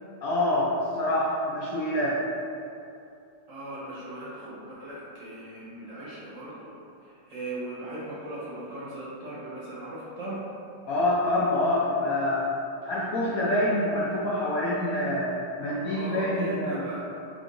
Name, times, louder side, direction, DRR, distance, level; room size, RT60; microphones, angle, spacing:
voice 1, 0.2-2.2 10.9-12.5 12.8-16.8, left 1 dB, 70° left, -7 dB, 0.8 m, -26 dB
voice 2, 3.5-6.7 7.0-10.4 15.6-17.1, right 1 dB, 60° right, -8 dB, 0.9 m, -38 dB
3.7 x 2.5 x 3.6 m, 2.6 s
omnidirectional pair, 1.9 m